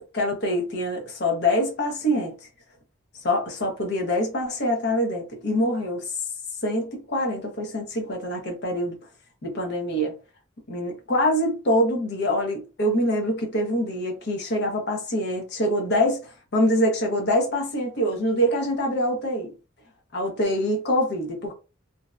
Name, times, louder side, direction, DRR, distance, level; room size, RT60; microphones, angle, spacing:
voice 1, 0.0-2.4 3.2-6.1 6.6-9.0 9.4-10.2 10.7-19.5 20.1-21.5, equal, 55° left, 0.6 m, -25 dB
2.6 x 2.0 x 2.3 m
head